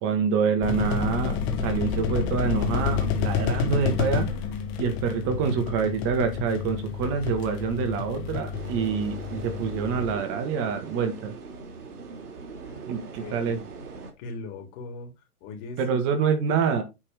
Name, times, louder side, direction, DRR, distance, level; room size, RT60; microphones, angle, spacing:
voice 1, 0.0-4.3 4.8-11.3 12.9-13.6 15.8-16.8, right 6 dB, 30° right, 1.8 m, -26 dB
sound 1, 0.6-10.1, left 7 dB, 10° left, 0.4 m, -29 dB
sound 2, 8.5-14.1, right 4 dB, 85° right, 2.9 m, -40 dB
voice 2, 13.2-13.5 14.2-15.1 15.4-16.0, left 3 dB, 35° left, 3.1 m, -39 dB
8.8 x 4.2 x 5.2 m
hypercardioid pair, 140°, 45 cm